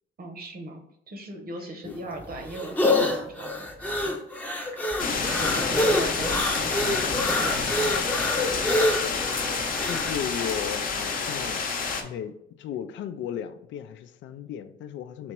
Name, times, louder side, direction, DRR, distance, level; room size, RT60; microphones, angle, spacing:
voice 1, 0.2-0.8 1.1-8.3, right 2 dB, 50° right, 1.0 m, -39 dB
sound 1, 1.9-10.1, left 1 dB, 10° left, 0.7 m, -26 dB
sound 2, 5.0-12.0, left 4 dB, 45° left, 0.7 m, -28 dB
voice 2, 9.9-11.6 12.0-15.3, left 9 dB, 70° left, 0.4 m, -35 dB
3.4 x 2.9 x 4.5 m
cardioid pair, 90°, 20 cm